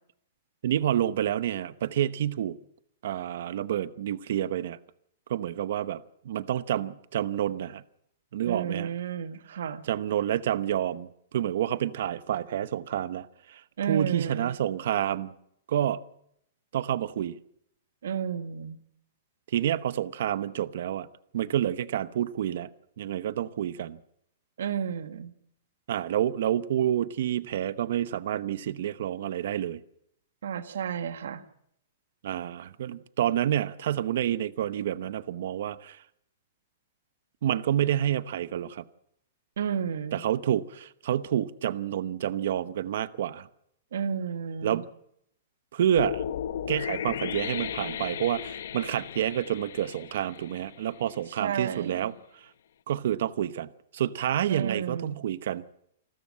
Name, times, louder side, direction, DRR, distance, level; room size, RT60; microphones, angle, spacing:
voice 1, 0.6-2.6 3.0-4.8 5.3-7.8 8.3-8.9 9.9-11.1 11.3-13.6 13.9-15.3 15.7-16.0 16.7-17.4 19.5-21.1 21.3-22.7 23.0-24.0 25.9-29.8 32.2-36.0 37.4-38.8 40.1-43.5 44.6-44.9 45.7-46.2 46.7-52.1 52.9-55.6, right 11 dB, 50° right, 0.9 m, -28 dB
voice 2, 8.4-9.8 13.8-14.5 18.0-18.8 24.6-25.3 30.4-31.4 39.6-40.2 43.9-44.8 51.3-52.1 54.5-55.2, right 7 dB, 70° right, 1.6 m, -32 dB
sound 1, 46.0-51.1, left 9 dB, 60° left, 0.8 m, -35 dB
28.0 x 13.0 x 7.5 m
hypercardioid pair, 180°, 0 cm